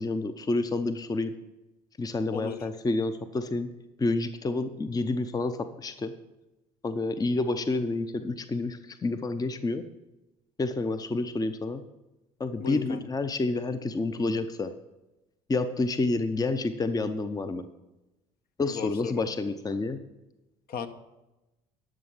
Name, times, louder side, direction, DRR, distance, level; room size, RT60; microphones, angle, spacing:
voice 1, 0.0-1.3 2.0-3.7 4.0-6.1 6.8-9.8 10.6-11.8 12.4-14.7 15.5-17.7 18.6-20.0, left 3 dB, 20° left, 10 dB, 0.7 m, -29 dB
voice 2, 12.6-13.0 18.7-19.2 20.7-20.9, left 7 dB, 55° left, 8 dB, 1.1 m, -35 dB
12.5 x 6.4 x 5.6 m, 1.0 s
hypercardioid pair, 65°, 19 cm